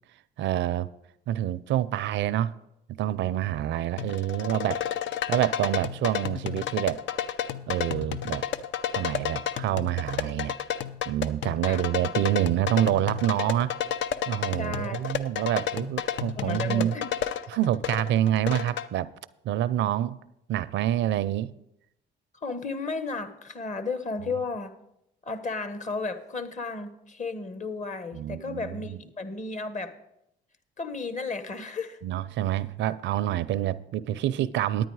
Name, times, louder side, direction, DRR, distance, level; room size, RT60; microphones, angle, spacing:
voice 1, 0.4-0.9 1.3-2.5 3.0-4.8 5.3-7.0 7.7-8.5 8.9-10.6 11.1-13.7 14.3-17.0 17.5-19.1 19.4-20.2 20.5-21.5 28.1-29.0 32.0-34.8, right 12 dB, 70° right, 0.5 m, -27 dB
sound 1, 4.0-18.9, left 10 dB, 70° left, 0.6 m, -31 dB
voice 2, 14.5-15.0 16.4-17.1 22.4-24.7 25.2-29.9 30.8-32.0, left 3 dB, 40° left, 1.2 m, -33 dB
10.0 x 9.1 x 4.7 m
supercardioid pair, 70°, 20 cm